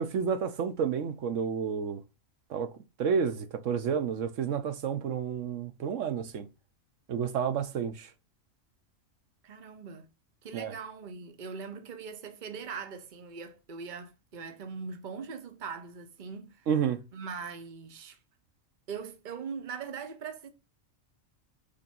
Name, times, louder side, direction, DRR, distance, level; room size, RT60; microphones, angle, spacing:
voice 1, 0.0-2.0 2.5-2.7 3.0-6.5 7.1-8.1 10.5-10.7 16.7-17.0, right 7 dB, 70° right, 1.1 m, -30 dB
voice 2, 9.4-10.1 10.4-16.7 17.1-18.2 18.9-20.5, right 5 dB, 40° right, 1.0 m, -41 dB
5.4 x 4.3 x 5.3 m
omnidirectional pair, 1.4 m